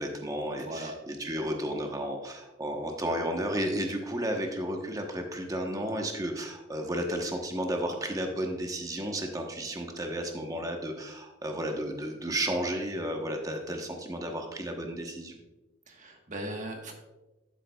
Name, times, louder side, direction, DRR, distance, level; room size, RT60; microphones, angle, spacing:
voice 1, 0.0-15.4, right 1 dB, 20° right, 3 dB, 1.0 m, -33 dB
voice 2, 0.6-0.9 15.9-16.9, right 1 dB, 40° right, 3 dB, 1.3 m, -38 dB
12.0 x 7.3 x 2.3 m, 1.1 s
head